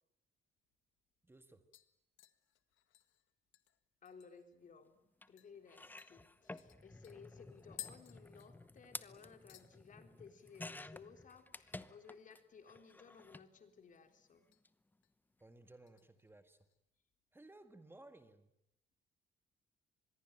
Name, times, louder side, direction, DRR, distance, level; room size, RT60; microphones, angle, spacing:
sound 1, 0.6-0.7 1.1-1.4 1.7-4.6 4.9-5.0 5.4-5.5 6.0-9.0 9.2-9.7 10.1-10.5 10.7-10.8 12.9-13.6 13.9-14.6 15.0-15.3 15.9-16.8 17.1-17.2, left 12 dB, 85° left, 1.8 m, -57 dB
voice 1, 1.2-1.7 15.4-16.6 17.3-18.5, right 2 dB, 10° right, 9 dB, 1.7 m, -59 dB
voice 2, 4.0-14.5, left 6 dB, 40° left, 7 dB, 3.7 m, -59 dB
sound 2, 5.2-5.3 5.7-12.4 12.7-13.5 14.5-14.7 14.9-15.0, left 2 dB, 10° left, 0.9 m, -52 dB
25.5 x 21.5 x 9.1 m, 0.83 s
cardioid pair, 135°, 19 cm